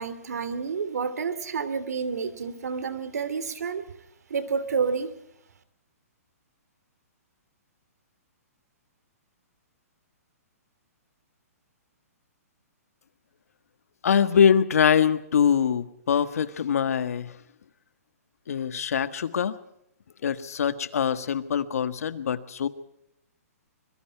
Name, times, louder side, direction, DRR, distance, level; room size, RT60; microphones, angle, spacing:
voice 1, 0.0-3.9 4.3-5.2, right 5 dB, 80° right, 14 dB, 2.8 m, -29 dB
voice 2, 14.0-17.3 18.5-19.6 20.2-22.7, left 7 dB, 65° left, 12 dB, 1.6 m, -23 dB
25.5 x 22.0 x 4.6 m, 0.79 s
hypercardioid pair, 175°, 9 cm